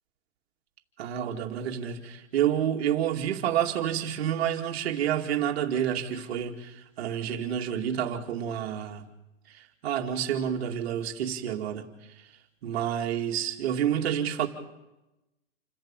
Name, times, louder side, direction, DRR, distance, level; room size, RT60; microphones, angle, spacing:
voice 1, 1.0-9.0 9.5-12.3 12.6-14.5, right 9 dB, 50° right, 2.3 m, -29 dB
28.0 x 11.5 x 8.9 m
hypercardioid pair, 155°, 40 cm